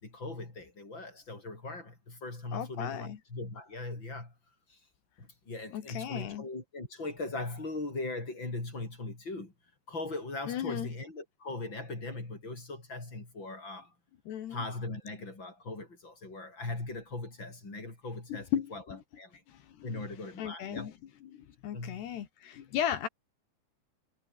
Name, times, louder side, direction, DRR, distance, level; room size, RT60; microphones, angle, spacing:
voice 1, 0.0-4.3 4.7-4.8 5.2-9.5 9.9-13.9 14.5-18.8 19.1-19.4 19.8-20.9 21.7-22.0, left 2 dB, 25° left, 6.7 m, -39 dB
voice 2, 2.5-3.2 5.7-6.5 10.5-10.9 14.3-14.6 18.3-19.0 19.5-20.1 20.4-20.9 21.2-23.1, left 10 dB, 65° left, 3.8 m, -36 dB
omnidirectional pair, 5.4 m